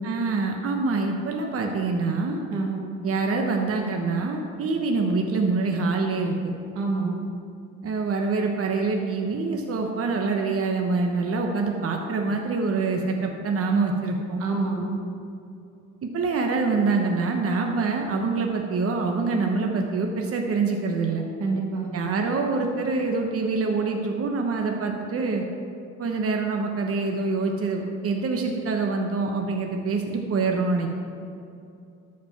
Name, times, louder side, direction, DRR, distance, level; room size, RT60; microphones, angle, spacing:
voice 1, 0.0-2.4 3.0-6.3 7.8-14.4 16.0-21.2 21.9-25.4 26.0-30.9, right 4 dB, 50° right, 2 dB, 1.0 m, -25 dB
voice 2, 6.8-7.2 14.4-14.9 21.4-21.9, right 3 dB, 85° right, 0 dB, 1.8 m, -26 dB
12.5 x 5.1 x 5.8 m, 2.6 s
cardioid pair, 90°, 30 cm